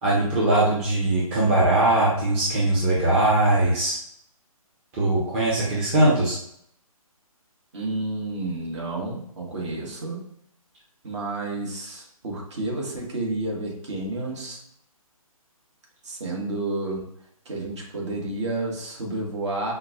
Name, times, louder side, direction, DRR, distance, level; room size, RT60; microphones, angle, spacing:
voice 1, 0.0-4.0 4.9-6.4, right 1 dB, 20° right, -6 dB, 0.8 m, -21 dB
voice 2, 7.7-10.2 11.0-14.6 16.0-17.1 17.4-19.7, right 2 dB, 50° right, -2 dB, 1.4 m, -30 dB
5.5 x 2.3 x 2.7 m, 0.69 s
figure-of-eight pair, 145°, 19 cm